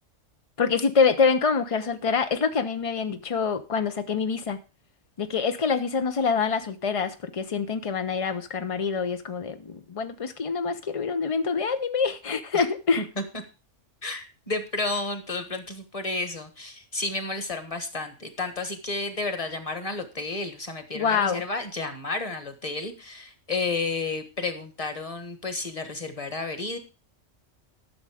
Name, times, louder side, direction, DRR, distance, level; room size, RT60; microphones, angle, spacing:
voice 1, 0.6-4.6 5.2-13.0 20.9-21.4, left 5 dB, 45° left, 0.4 m, -25 dB
voice 2, 14.0-26.8, left 3 dB, 30° left, 1.4 m, -31 dB
12.5 x 6.5 x 4.9 m
omnidirectional pair, 1.3 m